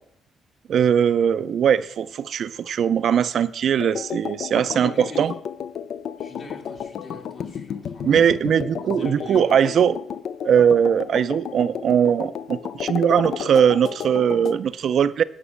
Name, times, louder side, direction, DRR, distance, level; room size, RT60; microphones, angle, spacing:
voice 1, 0.7-4.9 5.2-5.3 8.0-10.0 10.4-15.2, right 8 dB, 60° right, 14 dB, 0.4 m, -20 dB
sound 1, 3.8-14.6, left 8 dB, 65° left, 0.4 m, -33 dB
voice 2, 4.8-5.3 6.2-9.5, left 2 dB, 50° left, 1 dB, 2.5 m, -41 dB
9.9 x 5.4 x 6.2 m, 0.70 s
cardioid pair, 90°, 0 cm